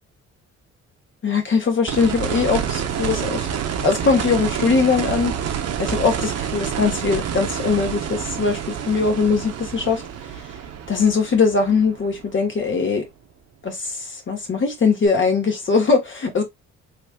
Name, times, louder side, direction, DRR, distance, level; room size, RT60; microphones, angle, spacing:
voice 1, 1.2-3.5 3.8-5.3 5.8-10.0 10.9-13.0 13.6-14.0 14.3-16.4, left 4 dB, 40° left, 1.3 m, -20 dB
sound 1, 1.9-12.8 15.1-15.2, right 8 dB, 55° right, 0.7 m, -28 dB
3.2 x 3.2 x 2.2 m
cardioid pair, 90°, 30 cm